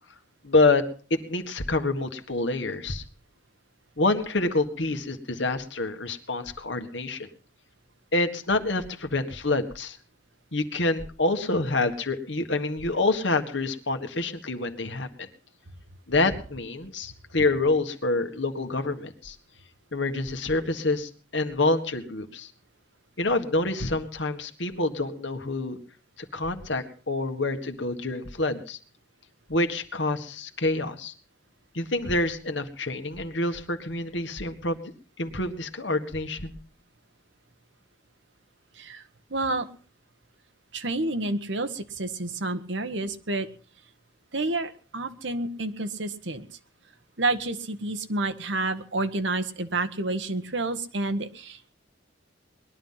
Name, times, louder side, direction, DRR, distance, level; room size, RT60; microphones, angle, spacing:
voice 1, 0.4-0.8 1.1-3.0 4.0-7.3 8.1-10.0 10.5-15.3 16.1-19.4 19.9-22.5 23.2-25.8 26.3-28.8 29.5-31.1 31.7-34.9 35.2-36.6, left 2 dB, 65° left, 7 dB, 1.8 m, -27 dB
voice 2, 39.3-39.7 40.7-43.5 44.3-46.5 47.2-51.7, right 2 dB, 65° right, 8 dB, 1.4 m, -29 dB
20.5 x 11.5 x 5.7 m, 0.41 s
head